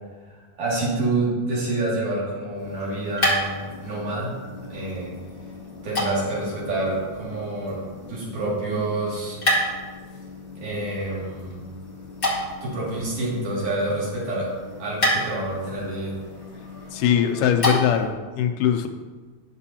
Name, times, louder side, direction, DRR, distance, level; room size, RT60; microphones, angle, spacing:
voice 1, 0.6-4.4 4.7-5.1 5.8-7.8 8.1-9.4 10.6-11.6 12.6-14.5 14.8-16.2, right 2 dB, 45° right, -6 dB, 3.2 m, -27 dB
sound 1, 2.5-18.1, left 1 dB, 20° left, 1.6 m, -31 dB
voice 2, 16.9-18.9, left 9 dB, 80° left, 6 dB, 2.1 m, -21 dB
10.5 x 6.9 x 2.8 m, 1.4 s
omnidirectional pair, 3.7 m